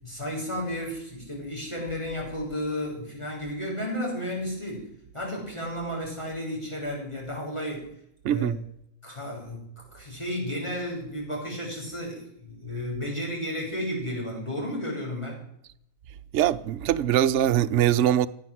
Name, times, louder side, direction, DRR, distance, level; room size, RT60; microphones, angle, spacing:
voice 1, 0.0-7.9 8.3-8.6 9.0-15.4, left 1 dB, 20° left, 6.4 m, -33 dB
voice 2, 8.2-8.6 16.3-18.3, right 11 dB, 65° right, 1.0 m, -22 dB
16.0 x 9.3 x 7.7 m
omnidirectional pair, 1.4 m